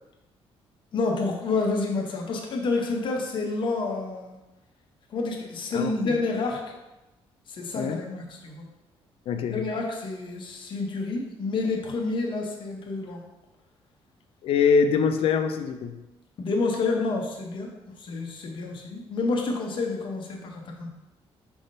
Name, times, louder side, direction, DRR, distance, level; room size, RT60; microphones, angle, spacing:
voice 1, 0.9-4.4 5.1-6.6 7.5-8.6 9.5-13.2 16.4-17.7 18.0-20.9, left 3 dB, 50° left, 0 dB, 0.8 m, -29 dB
voice 2, 5.7-6.1 7.7-8.0 9.3-9.6 14.4-16.0, left 6 dB, 65° left, 8 dB, 0.4 m, -24 dB
5.2 x 3.5 x 2.6 m, 1.0 s
cardioid pair, 115°, 10 cm